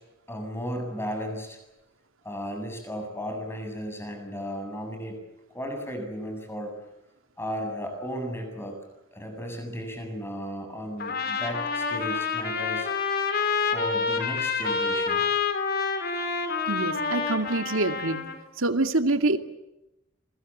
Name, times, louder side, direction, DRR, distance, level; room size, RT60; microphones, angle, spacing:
voice 1, 0.3-1.6 2.2-5.2 5.5-6.7 7.4-8.8 9.1-12.9 13.7-15.2, equal, 10° left, 5 dB, 7.7 m, -35 dB
Trumpet, 11.0-18.4, left 5 dB, 50° left, 3.8 m, -28 dB
voice 2, 16.6-19.4, right 2 dB, 85° right, 7 dB, 2.3 m, -26 dB
28.0 x 22.5 x 7.4 m, 0.90 s
head